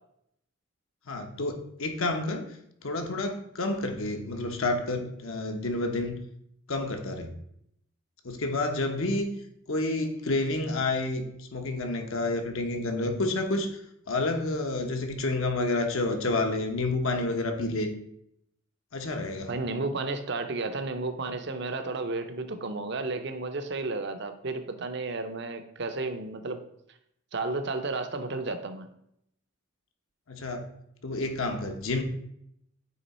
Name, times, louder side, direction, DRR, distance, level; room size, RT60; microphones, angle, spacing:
voice 1, 1.1-2.4 2.8-6.2 6.7-7.3 8.2-9.3 9.7-13.8 14.1-17.9 18.9-19.5 30.3-30.7 31.0-32.0, left 2 dB, 75° left, 4 dB, 1.0 m, -29 dB
voice 2, 19.5-26.6 27.3-28.8, right 3 dB, 55° right, 8 dB, 0.6 m, -32 dB
8.5 x 3.4 x 4.2 m, 0.74 s
head